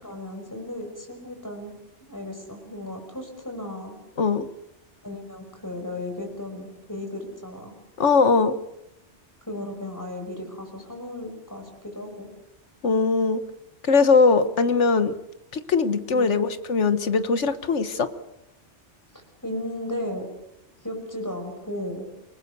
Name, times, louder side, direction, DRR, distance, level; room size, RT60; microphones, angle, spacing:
voice 1, 0.0-1.7 2.0-4.0 5.0-7.7 9.5-12.3 16.1-16.4 19.4-20.3 20.8-22.1, left 1 dB, 15° left, 4 dB, 5.6 m, -35 dB
voice 2, 8.0-8.6 12.8-13.4 13.8-15.1 15.5-18.1, left 4 dB, 85° left, 11 dB, 1.6 m, -20 dB
28.5 x 19.5 x 6.8 m, 0.82 s
omnidirectional pair, 1.2 m